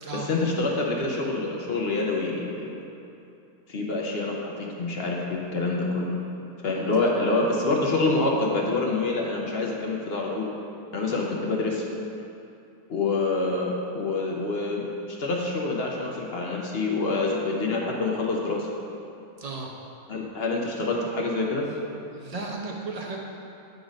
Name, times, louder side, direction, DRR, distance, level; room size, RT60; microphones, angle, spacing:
voice 1, 0.1-2.9 3.7-6.2 6.6-10.5 10.9-11.8 12.9-18.7 20.1-21.7, left 3 dB, 50° left, -1 dB, 0.8 m, -26 dB
voice 2, 19.4-19.7 22.1-23.2, right 3 dB, 35° right, -2 dB, 0.7 m, -34 dB
8.4 x 4.0 x 5.1 m, 2.7 s
omnidirectional pair, 1.5 m